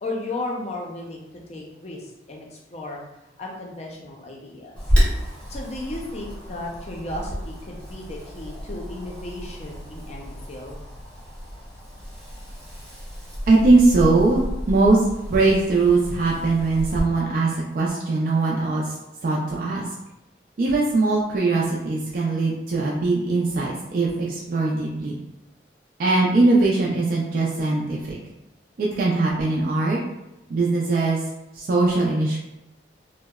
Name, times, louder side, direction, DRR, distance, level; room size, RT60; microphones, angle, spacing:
voice 1, 0.0-3.0 3.4-4.8 5.5-10.8, left 2 dB, 40° left, -1 dB, 0.4 m, -34 dB
Wind, 4.8-17.0, equal, 5° left, 0.8 m, -30 dB
voice 2, 13.5-18.9 19.2-19.8 20.6-25.2 26.0-28.2 28.8-30.0 30.5-31.2 31.5-32.4, right 3 dB, 50° right, -4 dB, 0.3 m, -21 dB
2.7 x 2.0 x 2.3 m, 0.97 s
head